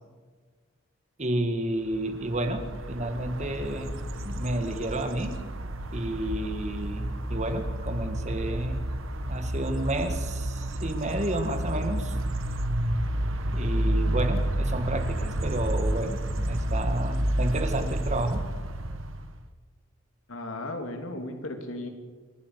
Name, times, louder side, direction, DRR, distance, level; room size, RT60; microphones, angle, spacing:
voice 1, 1.2-4.0 4.2-5.4 5.9-8.8 9.2-12.2 13.5-18.5, right 1 dB, 35° right, 8 dB, 1.8 m, -31 dB
Birds sound pájaros, 1.9-19.5, right 1 dB, 75° right, 1.5 m, -30 dB
voice 2, 20.3-21.9, left 2 dB, 85° left, 5 dB, 3.0 m, -35 dB
28.0 x 11.5 x 8.1 m, 1.4 s
head